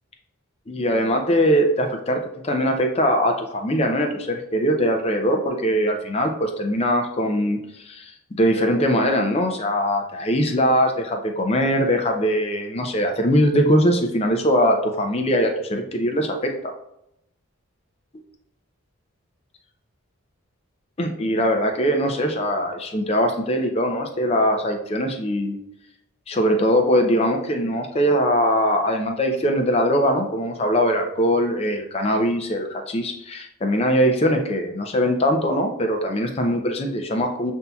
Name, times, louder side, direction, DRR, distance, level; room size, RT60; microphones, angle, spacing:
voice 1, 0.7-7.6 7.9-16.7 21.0-25.6 26.3-37.5, equal, 30° left, 3 dB, 0.4 m, -21 dB
5.5 x 2.7 x 2.3 m, 0.81 s
head